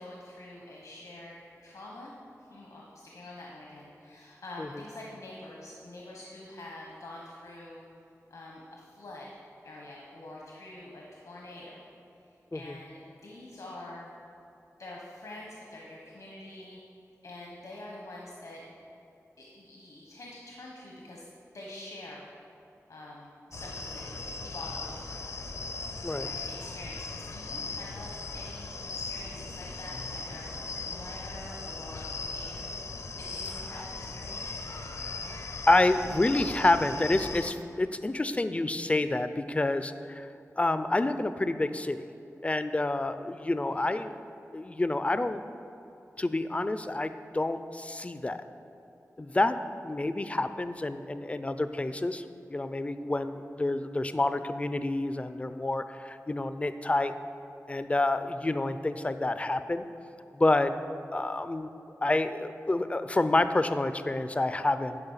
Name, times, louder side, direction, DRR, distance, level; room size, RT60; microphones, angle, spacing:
voice 1, 0.0-2.1 2.4-2.8 3.1-7.8 8.3-9.4 9.6-11.8 12.5-14.1 14.8-16.8 17.2-18.6 19.4-21.3 21.5-22.3 22.9-25.3 26.2-32.7 33.2-34.6 43.8-43.9 52.0-52.2, left 1 dB, 85° left, -3 dB, 1.2 m, -46 dB
sound 1, 23.5-37.5, left 3 dB, 65° left, 0.6 m, -38 dB
voice 2, 35.7-40.3 40.6-42.0 42.4-44.1 44.5-45.4 46.2-48.4 49.2-49.6 49.8-52.2 52.5-57.1 57.7-59.8 60.3-60.7 61.1-61.7 62.0-65.0, left 2 dB, 25° left, 11 dB, 0.4 m, -28 dB
11.0 x 5.0 x 5.7 m, 2.8 s
wide cardioid pair, 80°, 6 cm